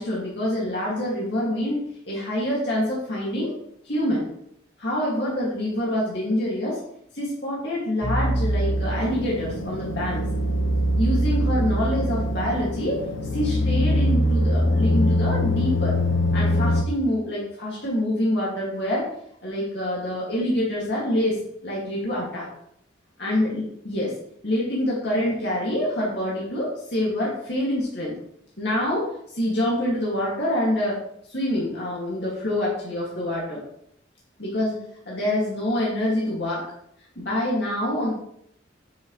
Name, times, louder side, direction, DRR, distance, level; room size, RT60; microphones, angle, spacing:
voice 1, 0.0-3.5 3.8-4.3 4.8-6.8 7.1-10.2 11.0-13.1 13.3-16.0 16.3-19.1 19.4-22.5 23.2-24.1 24.4-28.1 28.6-31.0 31.3-33.6 34.4-34.8 35.1-36.6 37.2-38.1, left 1 dB, 55° left, -6 dB, 2.4 m, -26 dB
sound 1, 8.0-16.8, equal, 80° left, 0.8 m, -23 dB
9.4 x 6.7 x 3.3 m, 0.71 s
head